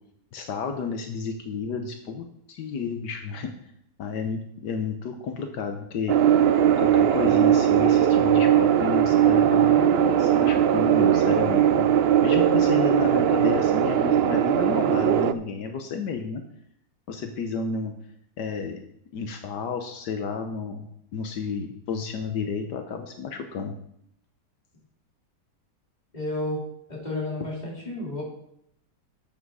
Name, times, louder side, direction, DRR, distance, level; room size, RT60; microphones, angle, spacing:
voice 1, 0.3-3.5 4.0-6.2 6.8-11.9 12.2-16.4 17.1-17.9 18.4-18.8 19.1-23.8, left 5 dB, 80° left, 5 dB, 1.6 m, -31 dB
sound 1, 6.1-15.3, right 10 dB, 80° right, 0.5 m, -19 dB
voice 2, 26.1-26.6 26.9-28.2, left 2 dB, 25° left, -4 dB, 3.7 m, -31 dB
12.0 x 7.7 x 4.8 m, 0.73 s
omnidirectional pair, 1.8 m